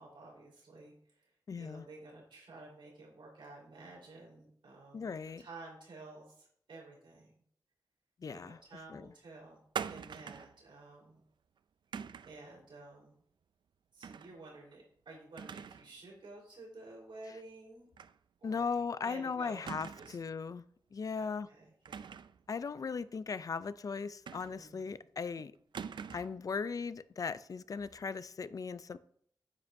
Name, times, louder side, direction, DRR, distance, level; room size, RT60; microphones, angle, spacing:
voice 1, 0.0-1.3 1.6-7.3 8.3-11.2 12.0-13.2 13.9-17.9 18.4-20.2 21.2-22.1 24.5-25.1, right 2 dB, 85° right, 4.0 m, -52 dB
voice 2, 1.5-1.8 4.9-5.4 8.2-8.6 8.9-9.1 18.4-20.6 20.9-21.5 22.5-25.5 26.1-29.0, left 5 dB, 45° left, 0.4 m, -38 dB
sound 1, 9.7-10.6 11.9-12.4 14.0-14.3 14.7-14.8 15.4-15.9 16.2-16.3 18.0-18.2 18.5-18.6 19.7-20.3 21.8-22.4 24.3-24.8 25.7-26.4, right 7 dB, 70° right, 0.4 m, -43 dB
9.6 x 8.4 x 2.6 m
wide cardioid pair, 145°, 8 cm